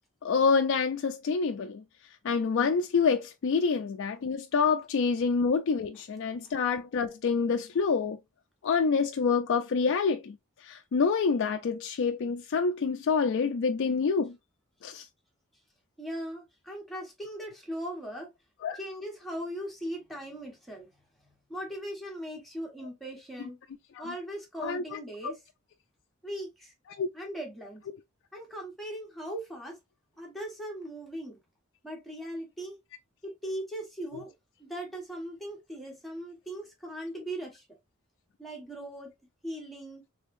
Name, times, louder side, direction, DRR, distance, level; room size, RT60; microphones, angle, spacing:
voice 1, 0.2-1.8 2.2-8.2 8.6-14.4 14.8-15.1 18.6-18.8 23.9-24.0 24.6-25.3 26.9-27.1, left 5 dB, 60° left, 0.4 m, -27 dB
voice 2, 16.0-18.3 18.7-20.9 21.2-23.6 24.0-25.4 26.2-26.7 27.1-27.8 28.3-29.8 30.2-31.4 31.8-32.8 33.2-34.3 34.6-37.6 38.4-39.1 39.4-40.0, right 1 dB, ahead, 1.3 m, -39 dB
3.4 x 3.4 x 2.5 m
head